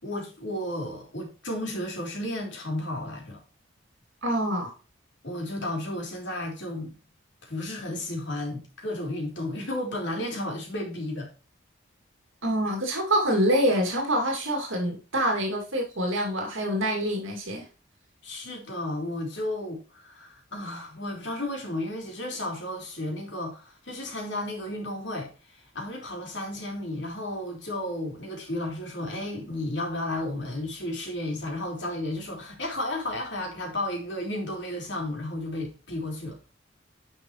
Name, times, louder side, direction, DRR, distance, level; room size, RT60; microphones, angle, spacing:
voice 1, 0.0-3.4 5.2-7.0 7.4-11.3 18.2-25.3 25.7-36.4, left 1 dB, 60° left, 3.3 m, -33 dB
voice 2, 4.2-4.7 12.4-17.7, equal, 70° right, 2.6 m, -26 dB
9.8 x 5.3 x 3.1 m
head